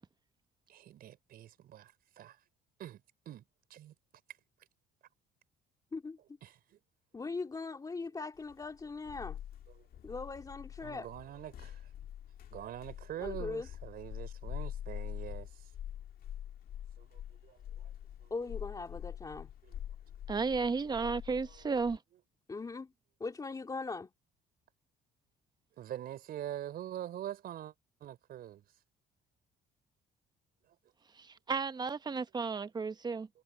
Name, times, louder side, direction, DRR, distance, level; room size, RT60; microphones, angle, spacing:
voice 1, 0.7-2.4 2.8-3.4 3.7-3.9 6.4-6.8 9.7-9.9 10.8-11.9 12.5-15.7 17.0-17.9 18.2-18.3 19.6-19.8 21.5-21.7 25.8-27.7 28.0-28.6 30.7-30.8, right 12 dB, 65° right, 4.9 m, -45 dB
voice 2, 7.1-9.4 10.0-11.1 13.2-13.7 18.3-19.5 22.5-22.9 23.2-24.1, left 4 dB, 20° left, 3.1 m, -40 dB
sound 1, 8.5-22.0, left 10 dB, 60° left, 2.0 m, -45 dB
voice 3, 20.3-22.0 31.2-33.3, right 4 dB, 25° right, 0.9 m, -33 dB
cardioid pair, 110°, 17 cm